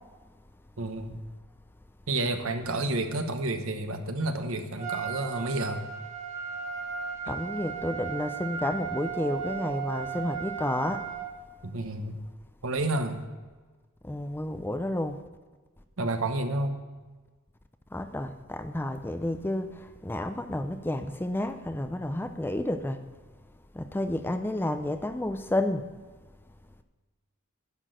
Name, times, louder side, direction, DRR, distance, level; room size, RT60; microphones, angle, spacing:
voice 1, 0.8-1.2 2.1-5.8 11.6-12.2 12.6-13.2 16.0-16.8, right 2 dB, 65° right, 1.1 m, -30 dB
Trumpet, 4.8-11.3, right 8 dB, 35° right, 1.6 m, -36 dB
voice 2, 7.3-11.1 14.0-15.2 17.9-23.0 23.7-25.9, left 1 dB, 10° left, 0.4 m, -31 dB
11.0 x 6.1 x 7.8 m
head